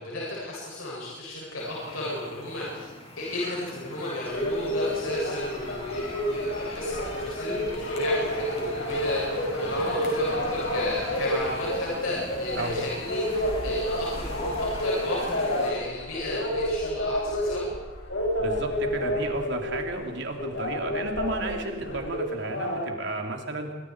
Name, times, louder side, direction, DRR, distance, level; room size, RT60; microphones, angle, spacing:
voice 1, 0.0-2.9 3.2-17.6, left 1 dB, 85° left, -6 dB, 7.8 m, -34 dB
sound 1, 1.6-15.7, left 1 dB, 30° left, 5.7 m, -44 dB
sound 2, 4.3-22.8, equal, 65° left, 6.4 m, -29 dB
sound 3, 4.7-14.6, right 1 dB, 40° right, 7.2 m, -47 dB
voice 2, 18.4-23.7, right 2 dB, 60° right, 3 dB, 3.4 m, -33 dB
26.5 x 24.5 x 4.9 m, 1.2 s
head